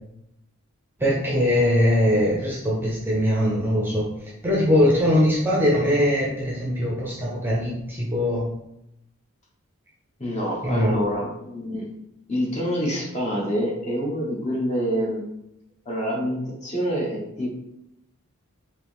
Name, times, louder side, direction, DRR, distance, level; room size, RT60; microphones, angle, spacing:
voice 1, 1.0-4.1 4.4-8.5 10.6-11.0, equal, 10° right, -5 dB, 0.8 m, -21 dB
voice 2, 10.2-11.8 12.3-15.2 15.8-17.5, equal, 30° left, -3 dB, 1.1 m, -26 dB
4.6 x 2.9 x 3.6 m, 0.81 s
head